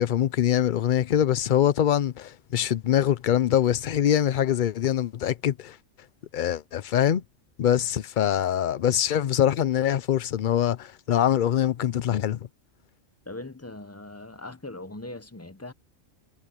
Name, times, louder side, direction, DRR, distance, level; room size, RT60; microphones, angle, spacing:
voice 1, 0.0-5.8 6.3-7.2 7.6-12.4, left 10 dB, 55° left, 0.5 m, -23 dB
voice 2, 13.3-15.7, left 2 dB, 15° left, 0.7 m, -40 dB
omnidirectional pair, 1.4 m